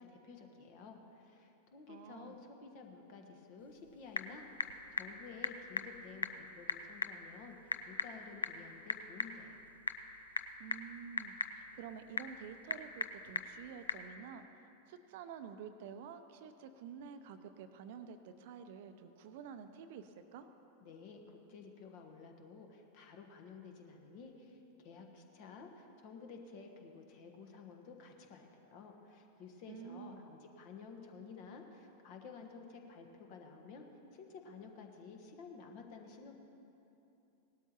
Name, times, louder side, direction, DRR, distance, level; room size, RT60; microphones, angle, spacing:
voice 1, 0.0-9.6 20.8-36.3, left 5 dB, 45° left, 3 dB, 1.3 m, -53 dB
voice 2, 1.9-2.4 10.6-14.6 14.9-20.5 29.7-30.2, right 7 dB, 50° right, 9 dB, 0.6 m, -50 dB
Typing / Telephone, 3.6-14.1, left 4 dB, 75° left, 0.4 m, -42 dB
18.5 x 12.5 x 3.0 m, 2.9 s
figure-of-eight pair, 90°, 0 cm